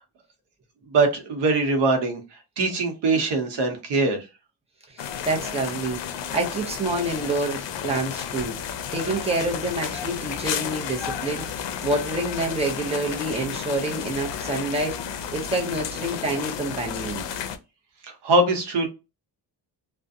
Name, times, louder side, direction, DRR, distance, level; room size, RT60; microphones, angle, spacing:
voice 1, 0.9-2.2 2.6-4.3 18.2-18.9, right 3 dB, 75° right, 0.8 m, -22 dB
voice 2, 4.9-6.0 6.3-11.5 11.8-17.3, right 2 dB, 15° right, 0.6 m, -28 dB
sound 1, 5.0-17.6, left 8 dB, 80° left, 0.5 m, -32 dB
2.4 x 2.2 x 2.6 m
wide cardioid pair, 170°, 42 cm